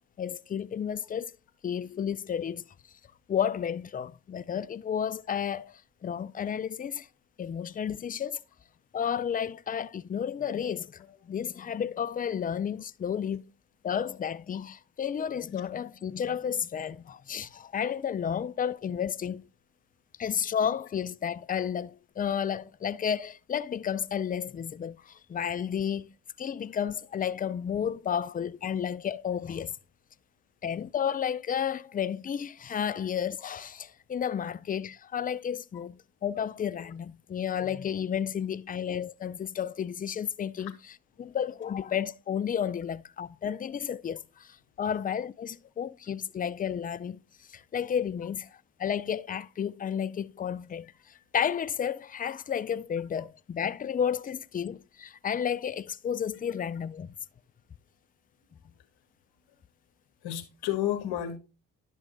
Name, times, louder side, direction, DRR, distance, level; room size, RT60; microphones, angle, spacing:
voice 1, 0.2-1.3 1.6-2.6 3.3-7.1 7.4-8.4 8.9-13.4 13.8-19.4 20.2-26.1 26.4-29.8 30.6-40.7 41.2-47.2 47.5-48.5 48.8-50.9 51.3-57.1, left 8 dB, 25° left, 0.4 m, -32 dB
voice 2, 60.2-61.4, left 12 dB, 75° left, 1.6 m, -31 dB
11.0 x 6.2 x 2.5 m
supercardioid pair, 55°, 39 cm